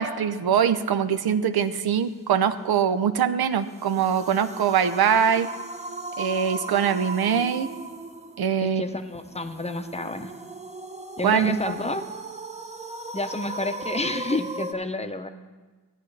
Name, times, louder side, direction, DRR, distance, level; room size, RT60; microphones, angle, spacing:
voice 1, 0.0-5.5 6.2-7.7 8.4-8.8 11.2-11.7, right 8 dB, 90° right, 11 dB, 0.6 m, -23 dB
sound 1, 3.6-14.7, right 2 dB, 20° right, 0.7 m, -37 dB
voice 2, 8.6-10.3 11.2-12.0 13.1-15.3, left 2 dB, 20° left, 7 dB, 0.7 m, -30 dB
15.5 x 9.1 x 3.2 m, 1.3 s
wide cardioid pair, 85°, 36 cm